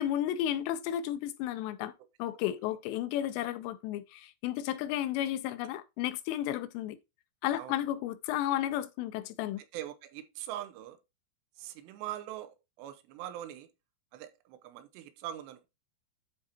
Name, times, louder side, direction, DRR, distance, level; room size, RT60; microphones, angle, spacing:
voice 1, 0.0-1.9 2.2-7.0 7.4-9.6, left 12 dB, 80° left, 2.7 m, -33 dB
voice 2, 9.7-11.0 11.6-13.7 14.1-15.7, right 12 dB, 80° right, 2.8 m, -42 dB
12.0 x 4.6 x 2.8 m
omnidirectional pair, 5.2 m